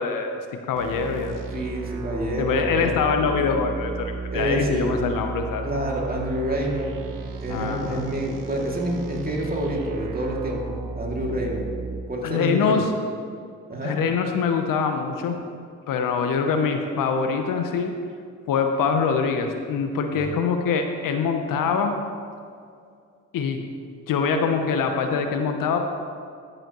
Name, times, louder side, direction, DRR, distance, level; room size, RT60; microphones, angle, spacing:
voice 1, 0.0-1.4 2.4-5.6 7.5-8.0 12.2-12.9 13.8-15.4 15.9-17.9 18.5-22.0 23.3-23.6 24.1-25.8, left 5 dB, 65° left, 5 dB, 0.9 m, -24 dB
sound 1, 0.8-12.0, right 4 dB, 65° right, 1.0 m, -34 dB
voice 2, 1.5-3.0 4.3-5.0 5.6-7.0 7.4-11.6 12.1-12.8 13.7-14.0 20.1-20.4, equal, 25° right, -2 dB, 2.5 m, -28 dB
13.5 x 7.9 x 3.1 m, 2.3 s
hypercardioid pair, 55°, 35 cm